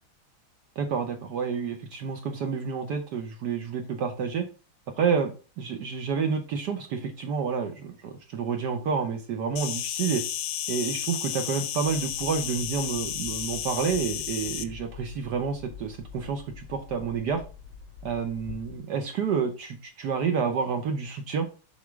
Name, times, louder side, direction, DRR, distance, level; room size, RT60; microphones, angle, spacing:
voice 1, 0.8-4.5 5.0-10.2 10.7-17.4 18.0-21.5, right 6 dB, 65° right, 6 dB, 1.1 m, -29 dB
Insect, 9.6-14.6, left 11 dB, 75° left, 1.1 m, -32 dB
sound 1, 11.8-18.8, left 6 dB, 55° left, 0.8 m, -45 dB
7.1 x 4.1 x 3.5 m, 0.34 s
omnidirectional pair, 2.4 m